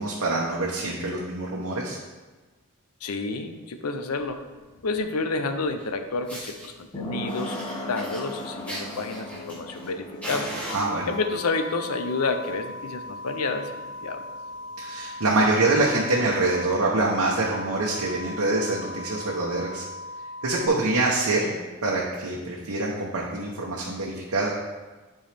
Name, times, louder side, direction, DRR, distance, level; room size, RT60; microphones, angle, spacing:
voice 1, 0.0-2.0 10.7-11.1 14.8-19.8 20.4-21.5 21.8-24.6, right 2 dB, 80° right, -4 dB, 1.0 m, -25 dB
voice 2, 3.0-4.4 4.8-10.5 11.1-13.7 14.0-14.3, left 3 dB, 85° left, 7 dB, 0.6 m, -29 dB
sound 1, 4.2-15.4 15.6-15.7, equal, 25° left, 1.0 m, -40 dB
Fire, 5.8-5.9 6.3-6.7 7.3-9.9 10.2-11.4 12.2-12.5 12.8-12.9 13.3-13.4 13.6-13.8 14.4-14.5 15.4-15.5, equal, 5° left, 2.0 m, -38 dB
sound 2, 10.7-20.7, left 2 dB, 55° left, 1.4 m, -39 dB
10.5 x 4.6 x 3.4 m, 1.3 s
head